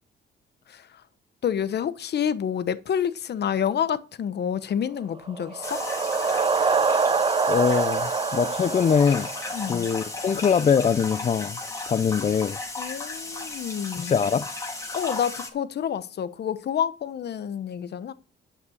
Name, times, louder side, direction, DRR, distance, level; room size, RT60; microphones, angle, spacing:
voice 1, 0.7-1.0 1.4-5.8 9.5-9.9 12.1-12.3 12.8-14.2 14.9-18.1, left 8 dB, 55° left, 1.0 m, -28 dB
sound 1, 5.2-10.1, right 5 dB, 25° right, 0.6 m, -25 dB
sound 2, 5.6-15.5, left 2 dB, 15° left, 3.1 m, -35 dB
voice 2, 7.5-9.3 9.7-11.6 11.9-12.6 14.0-14.5, left 7 dB, 35° left, 0.5 m, -23 dB
11.0 x 6.0 x 6.4 m
cardioid pair, 90°, 20 cm